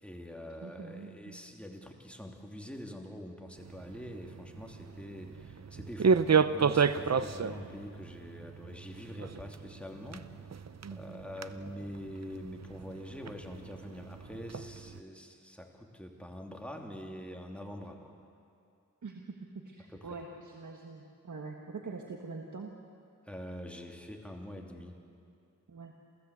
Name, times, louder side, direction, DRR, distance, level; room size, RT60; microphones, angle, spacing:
voice 1, 0.0-6.2 6.5-10.6 10.9-18.1 19.9-20.2 23.2-25.0, left 1 dB, 5° left, 2 dB, 2.9 m, -45 dB
voice 2, 0.6-1.4 10.8-11.2 19.0-22.7 25.7-25.9, right 4 dB, 75° right, 2 dB, 1.7 m, -44 dB
sound 1, 3.6-15.0, right 6 dB, 60° right, 0.7 m, -33 dB
28.0 x 16.0 x 8.3 m, 2.6 s
wide cardioid pair, 55°, 30 cm